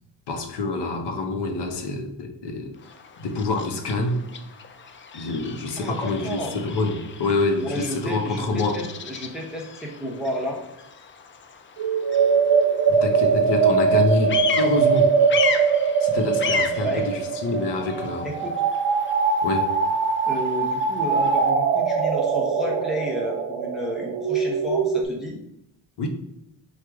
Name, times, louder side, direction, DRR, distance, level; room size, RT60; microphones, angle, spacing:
voice 1, 0.3-2.7 3.2-4.2 5.1-8.8 12.9-15.1 16.0-18.3 19.4-19.7 26.0-26.1, left 2 dB, 60° left, 4 dB, 0.9 m, -26 dB
Bird vocalization bird call bird song, 2.7-21.5, left 6 dB, 30° left, 0.4 m, -35 dB
voice 2, 5.8-6.7 7.6-10.6 16.8-17.0 18.2-18.6 20.3-25.4, equal, ahead, -2 dB, 0.8 m, -31 dB
sound 1, 11.8-25.0, right 5 dB, 70° right, 0.7 m, -22 dB
4.6 x 2.5 x 4.6 m, 0.82 s
cardioid pair, 100°, 45 cm